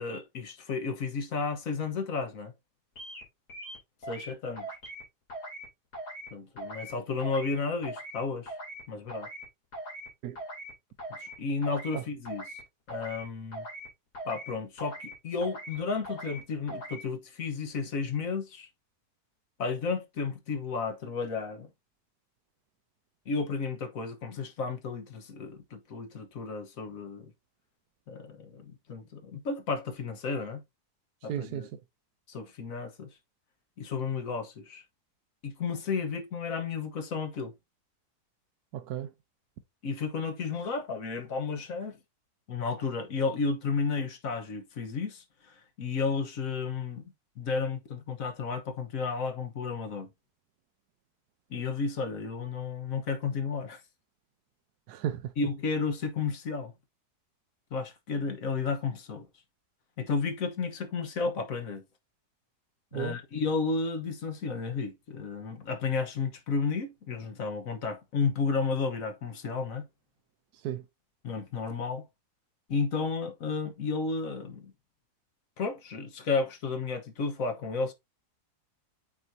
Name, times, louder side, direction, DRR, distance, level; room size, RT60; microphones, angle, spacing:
voice 1, 0.0-2.5 4.1-4.7 6.3-8.5 8.9-9.3 11.2-12.4 12.9-13.6 14.3-18.7 19.6-21.7 23.3-27.3 28.1-30.6 31.2-31.7 32.3-33.1 33.8-34.8 35.4-37.5 39.8-42.0 42.5-45.5 45.8-50.1 51.5-53.8 55.4-56.7 57.7-59.3 60.0-61.8 62.9-69.8 71.2-72.1 72.7-74.7 75.6-77.9, left 4 dB, 60° left, 1.5 m, -32 dB
sound 1, 3.0-3.2 3.5-4.3 4.6-5.0 5.3-5.7 5.9-6.3 6.6-6.9 7.2-7.5 7.8-8.2 8.5-8.8 9.1-9.4 9.7-10.1 10.3-10.7 11.0-11.3 11.6-12.0 12.2-12.6 12.9-13.2 13.5-13.9 14.1-14.5 14.8-15.1 15.4-15.8 16.0-16.4 16.7-17.0, right 1 dB, 85° left, 3.8 m, -41 dB
voice 2, 31.3-31.8 38.7-39.1 54.9-55.3 62.9-63.2 70.5-70.8, right 10 dB, 80° right, 1.2 m, -34 dB
8.2 x 4.6 x 2.7 m
omnidirectional pair, 1.7 m